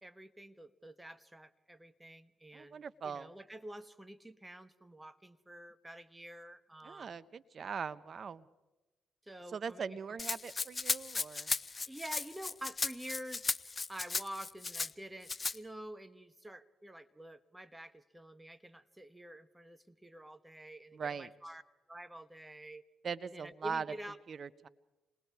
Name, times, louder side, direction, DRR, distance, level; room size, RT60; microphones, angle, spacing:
voice 1, 0.0-2.8 3.0-7.2 9.2-10.2 11.9-13.5 13.9-21.6 21.9-22.8 23.2-24.2, right 1 dB, 15° right, 12 dB, 1.2 m, -48 dB
voice 2, 2.5-3.3 6.8-8.4 9.5-11.5 20.9-21.3 23.0-23.8 24.3-24.7, right 6 dB, 50° right, 15 dB, 0.8 m, -40 dB
Rattle (instrument), 10.2-14.9 15.3-15.6, left 4 dB, 35° left, 0.6 m, -36 dB
28.0 x 20.0 x 4.7 m, 1.1 s
hypercardioid pair, 45°, 0 cm